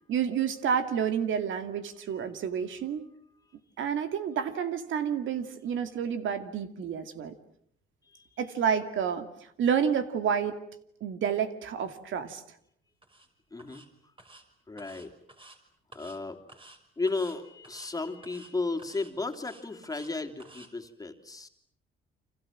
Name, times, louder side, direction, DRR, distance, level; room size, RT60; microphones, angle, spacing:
voice 1, 0.1-3.0 3.8-7.3 8.4-9.3 9.6-10.6 11.0-12.4, right 7 dB, 75° right, 9 dB, 2.5 m, -29 dB
voice 2, 8.0-8.4 13.5-13.8 14.7-15.1 15.9-16.4 17.0-21.5, left 3 dB, 20° left, 5 dB, 3.2 m, -34 dB
sound 1, 13.0-13.3 13.6-13.9 14.2-14.4 14.8-15.6 15.9-16.2 16.5-16.8 17.1-17.4 17.6-17.9 18.2-18.5 18.8-20.1 20.4-20.7, right 2 dB, 25° right, 5.7 m, -52 dB
29.5 x 26.0 x 7.6 m, 0.67 s
cardioid pair, 90°, 20 cm